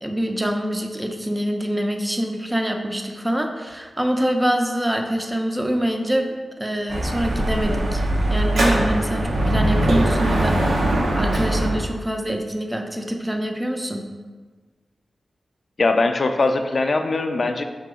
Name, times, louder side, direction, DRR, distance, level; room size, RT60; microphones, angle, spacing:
voice 1, 0.0-8.0 8.3-14.1, equal, 15° right, 3 dB, 0.5 m, -25 dB
Dog / Motorcycle, 6.9-11.9, right 1 dB, 85° right, 0.7 m, -21 dB
voice 2, 15.8-17.6, left 3 dB, 55° left, 6 dB, 0.4 m, -21 dB
3.8 x 2.8 x 4.9 m, 1.4 s
cardioid pair, 60°, 0 cm